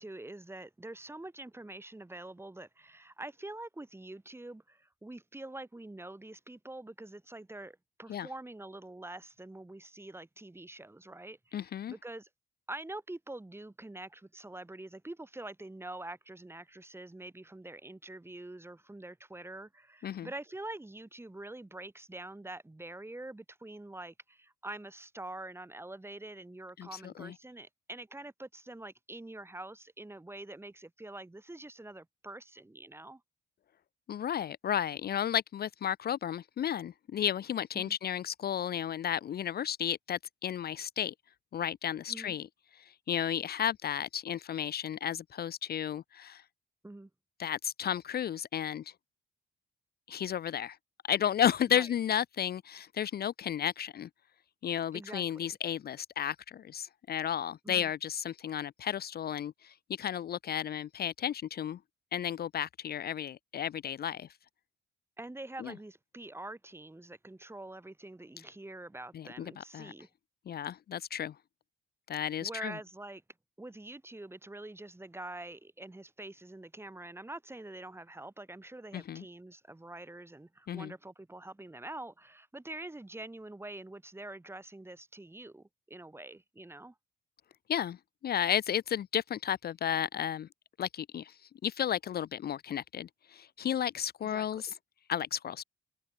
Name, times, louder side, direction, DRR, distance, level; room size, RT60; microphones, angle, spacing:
voice 1, 0.0-12.3 12.7-33.2 37.7-38.0 42.1-42.3 46.8-47.1 51.7-51.9 54.9-55.2 57.6-57.9 65.2-70.1 72.4-73.2 73.6-86.9 94.2-94.6, right 2 dB, 10° right, 5.6 m, -45 dB
voice 2, 11.5-11.9 20.0-20.3 26.8-27.3 34.1-41.1 41.5-42.5 42.7-46.4 47.4-48.9 50.1-50.8 51.0-54.1 54.6-61.8 62.1-64.3 65.6-65.7 69.1-69.9 70.5-71.3 72.1-72.7 78.9-79.2 80.7-80.9 87.7-88.0 88.2-90.5 90.8-91.4 91.6-94.7 95.1-95.6, left 9 dB, 50° left, 0.7 m, -33 dB
cardioid pair, 90°, 20 cm